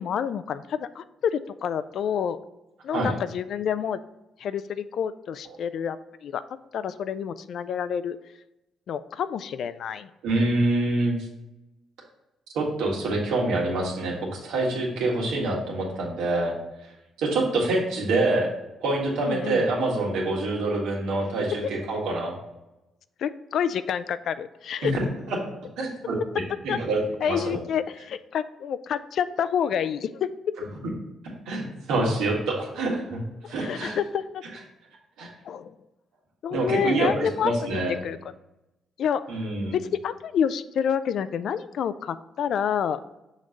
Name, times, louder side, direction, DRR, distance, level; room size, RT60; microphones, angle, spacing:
voice 1, 0.0-2.4 2.8-4.0 4.4-6.4 6.7-8.2 8.9-10.1 19.2-19.7 21.6-21.7 23.2-24.9 26.7-26.8 27.2-30.3 33.4-34.4 35.5-35.7 36.4-38.2 39.0-39.2 39.7-43.0, left 8 dB, 70° left, 14 dB, 0.3 m, -28 dB
voice 2, 10.2-11.1 12.5-16.5 17.2-18.5 18.8-22.3 24.8-24.9 25.3-25.4 25.8-26.2 26.6-27.6 31.4-33.2 33.5-34.0 35.2-35.3 36.5-37.9 39.3-39.8, right 2 dB, 90° right, -2 dB, 1.7 m, -26 dB
6.3 x 3.1 x 5.2 m, 0.96 s
cardioid pair, 90°, 0 cm